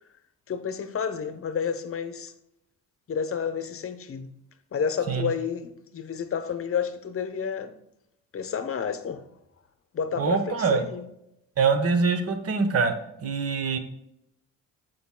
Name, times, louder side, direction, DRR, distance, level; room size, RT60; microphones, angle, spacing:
voice 1, 0.5-2.3 3.1-4.3 4.7-7.7 8.3-9.3 9.9-11.1, left 7 dB, 45° left, 0.9 m, -30 dB
voice 2, 10.2-10.8 11.6-12.9 13.2-13.8, right 5 dB, 50° right, 1.1 m, -24 dB
13.5 x 5.2 x 2.2 m
cardioid pair, 90°, 30 cm